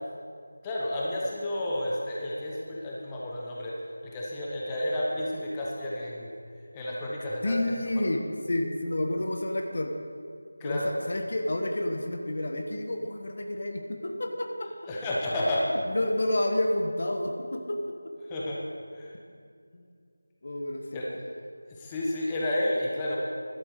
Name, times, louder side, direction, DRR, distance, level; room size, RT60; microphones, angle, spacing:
voice 1, 0.6-6.3 6.7-8.0 10.6-10.9 14.9-15.7 18.2-18.6 18.9-19.2 20.9-21.3 21.7-23.2, left 1 dB, 10° left, -4 dB, 1.1 m, -31 dB
voice 2, 7.4-9.9 10.6-14.7 15.7-18.1 19.7-19.9 20.4-21.0, left 1 dB, 50° left, 4 dB, 1.3 m, -30 dB
11.5 x 8.6 x 6.6 m, 2.2 s
figure-of-eight pair, 170°, 0 cm